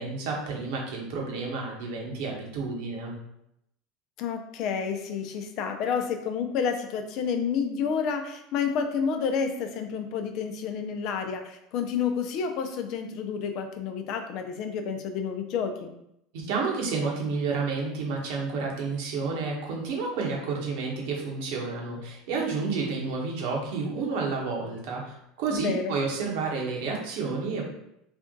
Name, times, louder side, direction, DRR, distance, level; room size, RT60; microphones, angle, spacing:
voice 1, 0.0-3.1 16.4-27.6, right 4 dB, 70° right, -2 dB, 1.3 m, -30 dB
voice 2, 4.2-15.9 25.5-26.0, left 6 dB, 60° left, 6 dB, 0.5 m, -30 dB
3.4 x 2.5 x 3.8 m, 0.80 s
supercardioid pair, 100°, 0 cm